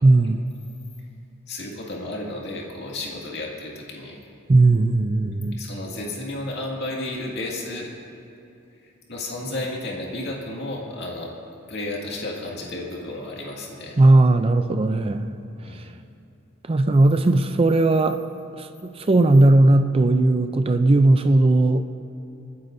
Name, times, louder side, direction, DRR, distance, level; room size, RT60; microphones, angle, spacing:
voice 1, 0.0-0.4 4.5-5.5 14.0-15.3 16.7-18.2 19.1-21.8, right 2 dB, 25° right, 8 dB, 0.4 m, -17 dB
voice 2, 1.5-4.2 5.6-7.9 9.1-11.3 11.7-14.0 15.6-15.9, left 2 dB, 55° left, -2 dB, 2.1 m, -32 dB
28.5 x 9.6 x 2.6 m, 2.7 s
head